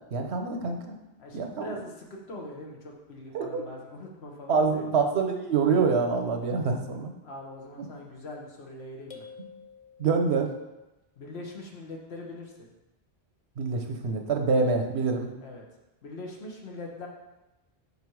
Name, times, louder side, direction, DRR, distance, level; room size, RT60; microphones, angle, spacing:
voice 1, 0.1-1.0 1.3-1.6 3.3-3.6 4.5-7.1 10.0-10.5 13.6-15.3, right 4 dB, 90° right, 4 dB, 1.1 m, -26 dB
voice 2, 1.2-4.9 7.2-9.2 11.2-12.7 15.4-15.6 16.0-17.1, left 2 dB, 80° left, 0 dB, 1.4 m, -42 dB
sound 1, 9.1-10.6, left 6 dB, 40° left, 0.6 m, -49 dB
5.5 x 5.2 x 4.7 m, 0.99 s
omnidirectional pair, 1.1 m